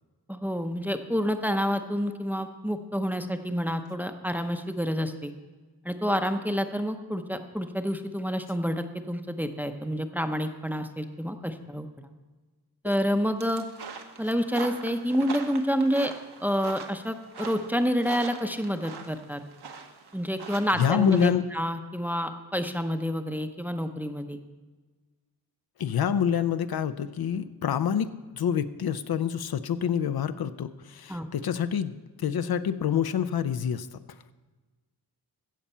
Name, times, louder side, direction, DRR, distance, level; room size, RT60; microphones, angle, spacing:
voice 1, 0.3-5.3 5.8-12.1 12.8-13.6 14.2-16.1 16.4-19.4 20.1-24.4 31.1-31.3, equal, 5° right, 7 dB, 0.7 m, -28 dB
sound 1, 13.4-21.3, right 5 dB, 75° right, 1.3 m, -42 dB
voice 2, 20.8-21.4 25.8-34.0, left 8 dB, 65° left, 12 dB, 0.6 m, -27 dB
16.0 x 7.3 x 5.5 m, 1.3 s
wide cardioid pair, 130°, 40 cm